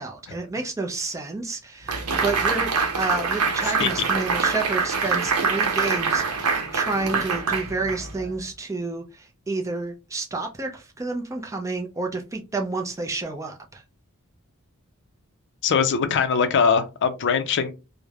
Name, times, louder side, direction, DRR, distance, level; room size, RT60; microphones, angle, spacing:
voice 1, 0.0-13.8, right 3 dB, 15° right, 0.4 m, -30 dB
sound 1, 1.9-8.3, right 5 dB, 85° right, 0.7 m, -25 dB
voice 2, 15.6-17.7, left 6 dB, 55° left, 0.4 m, -21 dB
3.1 x 2.1 x 2.3 m
head